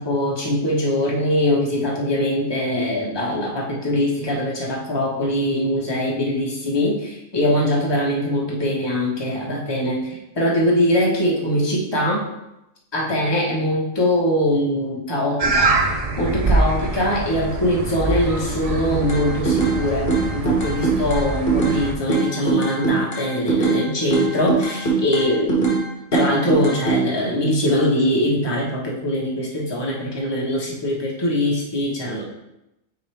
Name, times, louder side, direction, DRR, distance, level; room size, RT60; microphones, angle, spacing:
voice 1, 0.0-12.2 12.9-15.7 16.2-25.7 26.1-32.2, left 1 dB, 20° left, -4 dB, 1.2 m, -22 dB
sound 1, 15.4-21.9, right 3 dB, 50° right, 0.4 m, -24 dB
sound 2, 19.1-19.8 20.1-21.8 22.1-23.8 24.1-25.8 26.1-27.0, right 4 dB, 45° left, 1.4 m, -21 dB
9.1 x 3.2 x 3.4 m, 0.91 s
omnidirectional pair, 1.3 m